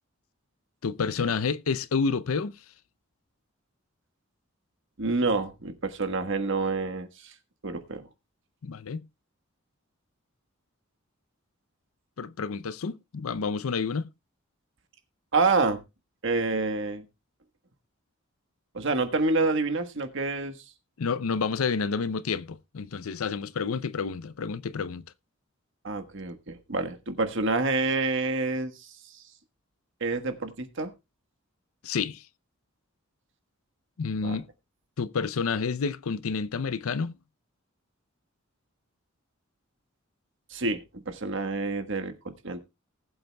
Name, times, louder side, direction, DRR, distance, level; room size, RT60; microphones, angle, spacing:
voice 1, 0.8-2.5 8.6-9.0 12.2-14.1 21.0-25.1 31.8-32.2 34.0-34.5 35.0-37.2, left 5 dB, 90° left, 0.6 m, -29 dB
voice 2, 5.0-7.3 7.6-8.0 15.3-15.8 16.2-17.0 18.7-20.6 25.8-29.2 30.0-30.9 34.2-34.4 40.5-42.6, right 3 dB, 60° right, 1.4 m, -28 dB
19.5 x 7.9 x 2.3 m
head